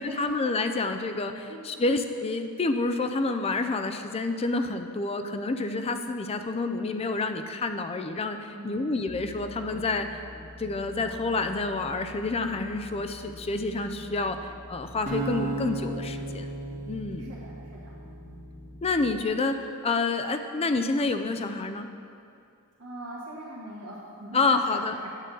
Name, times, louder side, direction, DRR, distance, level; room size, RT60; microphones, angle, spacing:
voice 1, 0.0-10.1 10.6-14.4 14.7-16.5 16.9-17.3 18.8-21.9 24.3-25.0, left 3 dB, 25° left, 7 dB, 0.4 m, -28 dB
voice 2, 1.5-1.9 8.5-8.9 17.2-18.0 22.8-25.1, right 1 dB, 80° right, -8 dB, 1.4 m, -41 dB
sound 1, 9.1-19.2, left 1 dB, 50° left, 1.1 m, -46 dB
sound 2, 15.1-18.2, right 2 dB, 35° right, 1.0 m, -34 dB
9.0 x 7.9 x 3.8 m, 2.5 s
head